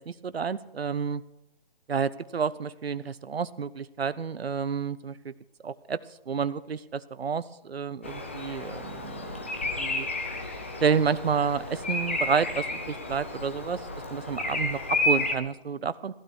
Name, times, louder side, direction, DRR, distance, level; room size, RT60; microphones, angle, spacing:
voice 1, 0.1-1.2 1.9-5.3 5.6-6.0 6.3-9.3 9.8-10.1 10.8-13.8 14.1-16.1, right 6 dB, 80° right, 15 dB, 0.7 m, -30 dB
Bird vocalization bird call bird song, 8.0-15.4, left 2 dB, 15° left, 0.5 m, -31 dB
15.5 x 12.5 x 4.6 m, 0.88 s
figure-of-eight pair, 160°, 30 cm